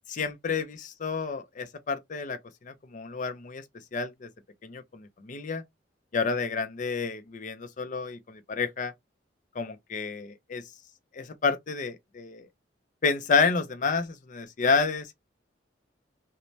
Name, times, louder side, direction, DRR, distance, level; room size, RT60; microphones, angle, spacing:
voice 1, 0.1-2.4 2.6-3.6 3.9-4.3 4.6-5.6 6.1-8.9 9.6-10.6 11.1-12.5 13.0-15.1, left 5 dB, 45° left, 0.4 m, -29 dB
3.1 x 2.0 x 2.6 m
head